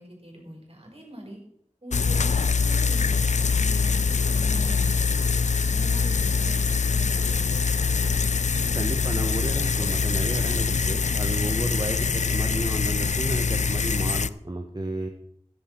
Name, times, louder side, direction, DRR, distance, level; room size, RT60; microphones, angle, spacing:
voice 1, 0.0-1.4 1.8-3.2 3.5-5.3 5.7-8.1, right 1 dB, 55° right, 0 dB, 4.8 m, -42 dB
sound 1, 1.9-14.3, left 5 dB, 85° left, 0.4 m, -24 dB
voice 2, 8.7-15.1, right 1 dB, 35° right, 4 dB, 1.2 m, -32 dB
14.0 x 10.5 x 4.5 m, 0.71 s
wide cardioid pair, 40°, 12 cm